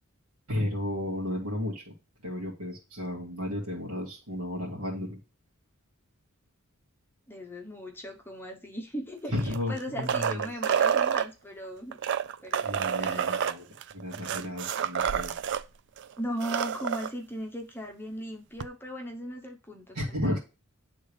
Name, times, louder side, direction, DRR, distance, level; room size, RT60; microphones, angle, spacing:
voice 1, 0.5-1.9 2.2-5.2 9.3-10.5 12.6-13.7 13.9-15.4 19.9-20.4, left 1 dB, 85° right, -3 dB, 2.0 m, -33 dB
voice 2, 7.3-12.0 12.4-13.6 16.2-20.4, equal, 10° left, 1 dB, 0.9 m, -38 dB
sound 1, 9.4-11.3 11.9-15.6 16.0-16.1 16.3-17.1 18.6-18.7, right 8 dB, 55° right, 0.4 m, -28 dB
9.9 x 3.6 x 3.3 m, 0.30 s
head